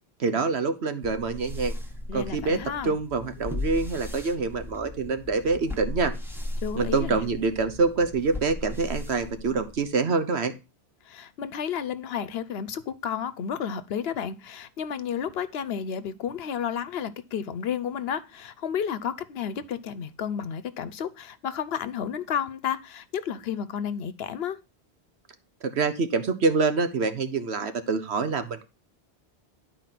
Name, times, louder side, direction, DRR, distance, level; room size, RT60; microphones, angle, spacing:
voice 1, 0.2-1.7 2.1-6.1 6.7-10.5 25.6-28.6, right 4 dB, 80° right, 1.3 m, -26 dB
sound 1, 1.0-9.9, left 1 dB, ahead, 1.1 m, -36 dB
voice 2, 2.1-3.0 6.6-7.2 11.1-24.6, left 8 dB, 70° left, 0.9 m, -32 dB
11.0 x 4.6 x 5.8 m
omnidirectional pair, 1.1 m